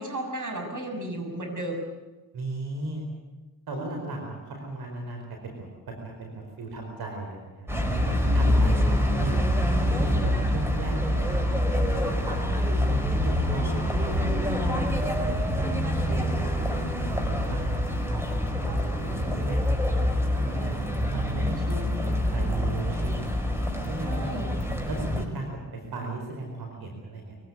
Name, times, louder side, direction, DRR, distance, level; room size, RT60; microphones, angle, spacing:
voice 1, 0.0-1.8 3.7-4.0 8.2-8.9 14.2-15.0 24.0-24.5, right 1 dB, 55° right, 4 dB, 6.7 m, -35 dB
voice 2, 2.3-3.0 3.7-5.7 6.0-6.3 6.6-7.7 8.0-8.8 9.1-9.6 9.9-14.5 15.0-17.6 18.1-20.7 21.1-23.2 23.9-24.5 24.8-27.3, right 2 dB, 80° right, 2 dB, 4.8 m, -36 dB
sound 1, 7.7-25.2, left 1 dB, 5° right, 4.7 m, -26 dB
23.0 x 17.5 x 9.7 m, 1.1 s
cardioid pair, 75°, 37 cm